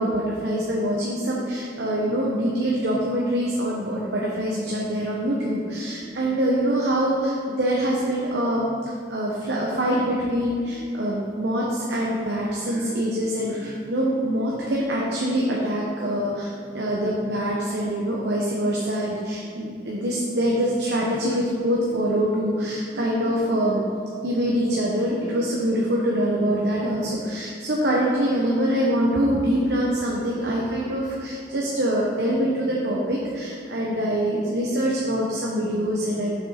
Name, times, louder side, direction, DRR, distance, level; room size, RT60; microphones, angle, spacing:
voice 1, 0.0-8.8 9.1-23.8 24.2-36.3, equal, 65° right, -4 dB, 1.0 m, -24 dB
7.2 x 6.2 x 4.2 m, 2.4 s
head